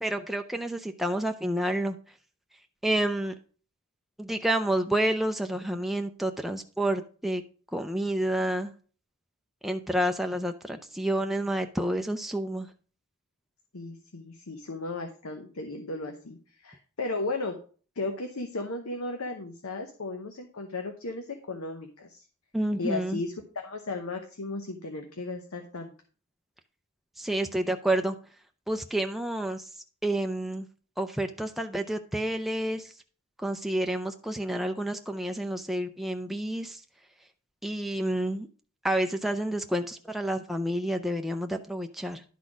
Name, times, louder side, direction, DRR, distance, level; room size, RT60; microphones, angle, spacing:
voice 1, 0.0-2.0 2.8-3.3 4.2-7.4 7.7-8.7 9.6-12.7 22.5-23.2 27.2-28.2 28.7-29.7 30.0-30.7 31.0-32.9 33.4-36.8 37.6-38.5 38.8-42.2, right 1 dB, ahead, 5 dB, 0.4 m, -29 dB
voice 2, 13.7-17.6 18.0-22.2 22.8-25.9, left 2 dB, 80° left, 5 dB, 0.9 m, -35 dB
11.0 x 4.1 x 4.9 m, 0.41 s
head